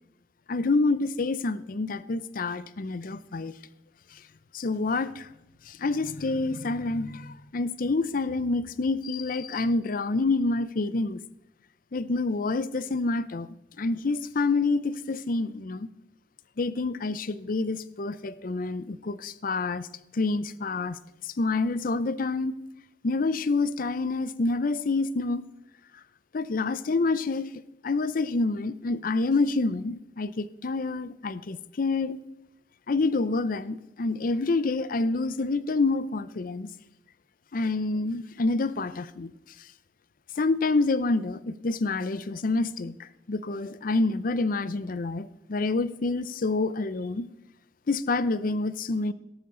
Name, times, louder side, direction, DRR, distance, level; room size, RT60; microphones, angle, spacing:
voice 1, 0.5-3.5 4.5-5.3 5.7-11.2 11.9-13.5 13.8-15.9 16.6-19.9 20.1-22.5 23.0-25.4 26.3-27.5 27.8-32.2 32.9-36.7 37.5-39.3 40.4-47.3 47.9-49.1, left 3 dB, 50° left, 16 dB, 0.5 m, -27 dB
13.0 x 12.5 x 3.8 m, 0.90 s
head